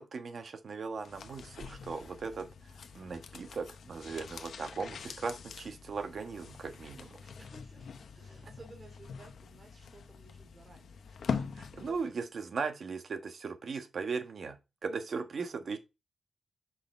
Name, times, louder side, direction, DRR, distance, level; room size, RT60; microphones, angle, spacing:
voice 1, 0.0-7.1 11.6-15.8, right 5 dB, 55° right, 1.4 m, -38 dB
sound 1, 1.0-12.2 12.5-12.6, left 6 dB, 70° left, 0.7 m, -43 dB
voice 2, 7.0-11.6, right 2 dB, 30° right, 2.6 m, -56 dB
5.7 x 5.6 x 4.3 m
wide cardioid pair, 150°, 0 cm